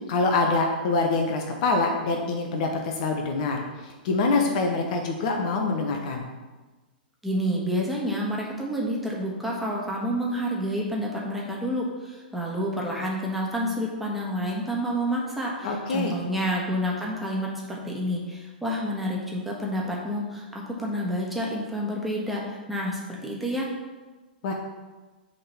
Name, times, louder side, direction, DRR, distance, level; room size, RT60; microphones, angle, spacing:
voice 1, 0.1-6.2 15.6-16.1 24.4-24.5, left 3 dB, 50° left, 2 dB, 1.0 m, -25 dB
voice 2, 7.2-23.7, equal, ahead, -4 dB, 1.6 m, -29 dB
6.7 x 3.8 x 5.8 m, 1.2 s
figure-of-eight pair, 105°, 5 cm